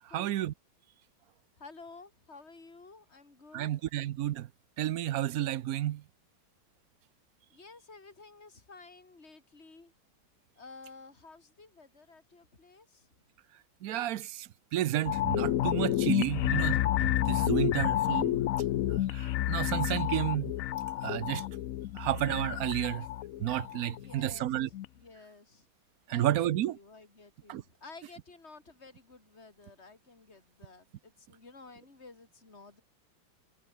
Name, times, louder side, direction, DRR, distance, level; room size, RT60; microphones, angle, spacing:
voice 1, 0.1-0.5 3.5-4.5 4.8-6.0 13.8-18.4 18.9-20.5 21.0-21.4 22.0-23.1 23.4-24.7 26.1-26.8 27.5-27.6, right 13 dB, 65° right, 0.9 m, -31 dB
voice 2, 1.6-3.7 7.5-9.9 10.6-13.1 23.9-25.7 26.1-32.8, left 3 dB, 30° left, 4.3 m, -53 dB
sound 1, 15.1-24.4 24.7-24.9, left 13 dB, 80° left, 0.7 m, -30 dB
omnidirectional pair, 2.1 m